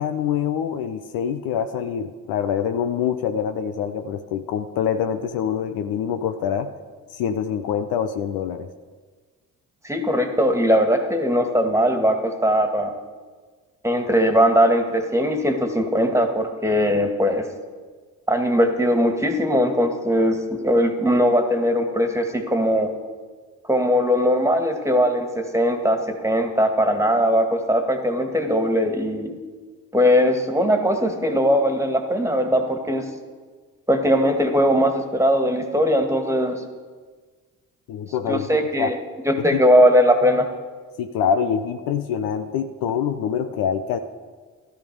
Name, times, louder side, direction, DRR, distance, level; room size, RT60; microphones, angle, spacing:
voice 1, 0.0-6.7 7.1-8.7 37.9-38.5 38.8-38.9 39.5-39.6 41.0-44.0, left 8 dB, 55° left, 8 dB, 0.8 m, -25 dB
voice 2, 9.8-12.9 13.8-17.5 18.3-22.9 23.7-29.3 29.9-33.1 33.9-36.6 38.3-39.0 39.3-40.5, equal, 5° right, 5 dB, 2.0 m, -20 dB
16.0 x 12.5 x 5.4 m, 1.5 s
figure-of-eight pair, 45°, 42 cm